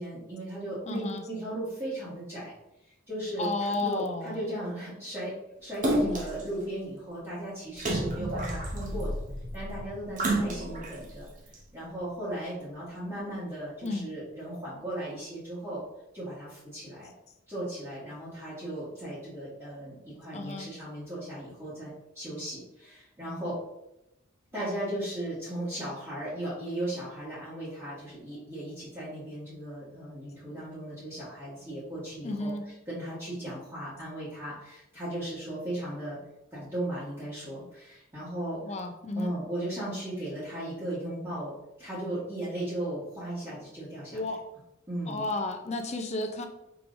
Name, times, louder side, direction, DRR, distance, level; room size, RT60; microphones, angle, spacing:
voice 1, 0.0-2.5 3.1-5.3 5.6-9.2 9.5-11.3 11.7-15.8 16.1-17.1 17.5-23.6 24.5-32.5 32.9-36.2 36.5-38.6 39.1-41.5 41.8-44.2 44.9-45.3, right 1 dB, 15° right, -11 dB, 1.3 m, -36 dB
voice 2, 0.9-1.2 3.4-4.4 6.0-6.3 13.8-14.1 20.3-20.7 32.2-32.6 38.6-39.3 44.1-44.4 45.1-46.5, left 2 dB, 30° left, 6 dB, 0.5 m, -32 dB
Splash splatter, 5.8-6.4 7.8-9.0 10.2-10.9 11.5-11.6, right 1 dB, 40° right, 0.7 m, -29 dB
sound 1, 7.8-12.0 12.5-12.6, left 1 dB, 50° left, 1.1 m, -38 dB
4.8 x 3.2 x 2.6 m, 0.89 s
head